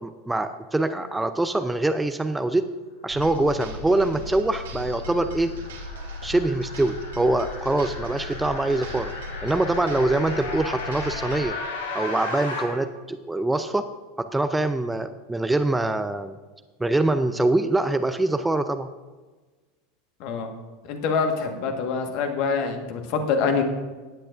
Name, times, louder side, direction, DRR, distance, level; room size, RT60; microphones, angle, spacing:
voice 1, 0.0-2.7 3.0-5.5 6.2-9.1 9.4-11.6 11.9-13.8 14.2-16.4 16.8-18.9, right 2 dB, 10° right, 10 dB, 0.5 m, -24 dB
sound 1, 3.1-11.4, left 2 dB, 65° right, 1.6 m, -37 dB
sound 2, 4.3-12.6, left 3 dB, 70° left, 2.3 m, -36 dB
voice 2, 20.9-23.6, left 5 dB, 50° left, 5 dB, 1.5 m, -25 dB
16.5 x 10.0 x 2.6 m, 1.3 s
figure-of-eight pair, 80°, 0 cm